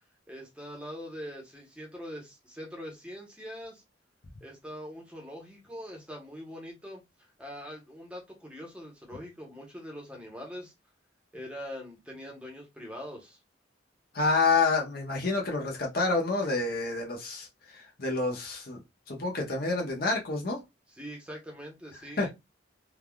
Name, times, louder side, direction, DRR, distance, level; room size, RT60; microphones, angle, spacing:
voice 1, 0.3-3.8 4.4-10.7 11.3-13.4 20.9-22.3, equal, 5° right, 0.9 m, -43 dB
voice 2, 14.1-18.8 19.1-20.6 22.2-22.3, left 3 dB, 50° left, 0.8 m, -28 dB
3.4 x 2.3 x 2.2 m
head